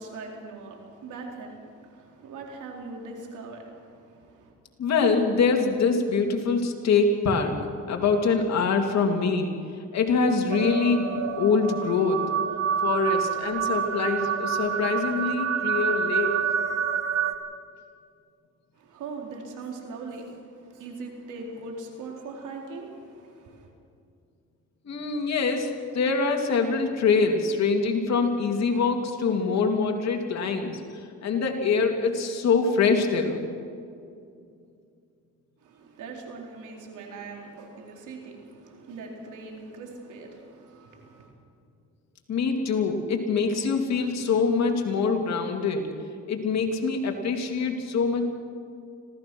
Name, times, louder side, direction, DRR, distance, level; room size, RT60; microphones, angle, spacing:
voice 1, 0.0-4.5 18.8-23.7 35.6-41.3, right 3 dB, 80° right, 1 dB, 4.0 m, -41 dB
voice 2, 4.8-7.5 7.9-9.5 9.9-12.2 12.8-16.4 24.8-30.8 31.2-33.4 42.3-45.9 46.3-48.2, left 4 dB, 60° left, 3 dB, 2.9 m, -24 dB
sound 1, 10.5-17.3, right 7 dB, 55° right, 1.8 m, -27 dB
25.5 x 17.0 x 6.2 m, 2.4 s
cardioid pair, 90°, 30 cm